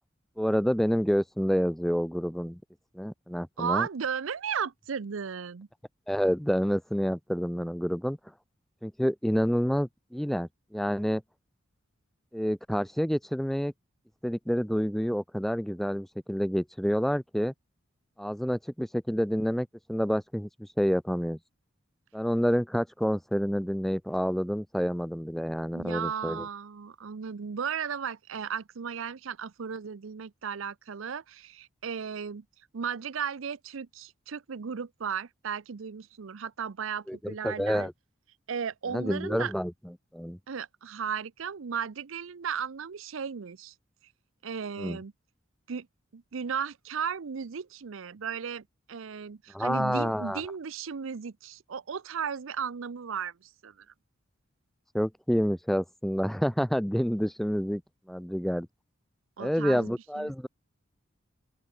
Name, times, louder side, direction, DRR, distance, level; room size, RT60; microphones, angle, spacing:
voice 1, 0.4-2.6 2.9-3.9 6.1-8.2 8.8-11.2 12.3-13.7 14.2-17.5 18.2-21.4 22.1-26.5 37.1-37.9 38.9-39.7 40.1-40.4 44.8-45.0 49.5-50.4 54.9-57.8 58.1-58.7 59.4-60.5, equal, ahead, 0.4 m, -28 dB
voice 2, 3.6-5.7 25.7-32.4 32.7-37.9 38.5-39.5 40.5-43.7 44.4-45.1 45.7-45.9 46.1-53.9 59.4-60.3, right 7 dB, 85° right, 0.6 m, -35 dB
open air
head